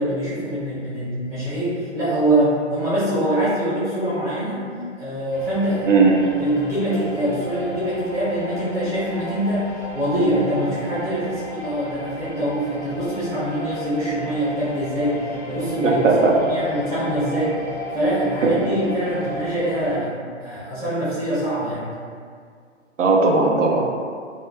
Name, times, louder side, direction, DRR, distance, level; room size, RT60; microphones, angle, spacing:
voice 1, 0.0-4.6 5.0-5.9 6.4-9.7 9.9-15.2 15.5-16.0 16.3-17.6 17.9-20.1 20.4-21.9, right 1 dB, 10° right, -12 dB, 0.6 m, -24 dB
sound 1, 5.3-20.0, equal, 35° left, 0.4 m, -35 dB
voice 2, 5.9-6.3 15.8-16.6 18.4-18.5 23.0-23.9, right 3 dB, 85° right, 0 dB, 0.5 m, -17 dB
2.2 x 2.0 x 2.8 m, 2.1 s
figure-of-eight pair, 125°, 37 cm